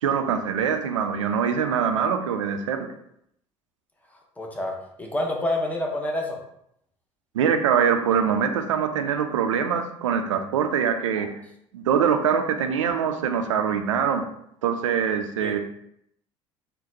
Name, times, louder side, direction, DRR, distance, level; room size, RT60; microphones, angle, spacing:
voice 1, 0.0-2.9 7.3-11.3 11.7-14.2 14.6-15.6, right 7 dB, 80° right, 6 dB, 0.4 m, -23 dB
voice 2, 4.4-4.7 5.0-6.4 11.2-11.3 15.4-15.6, left 1 dB, 10° left, 0 dB, 0.8 m, -28 dB
3.8 x 2.2 x 2.6 m, 0.73 s
figure-of-eight pair, 60°, 16 cm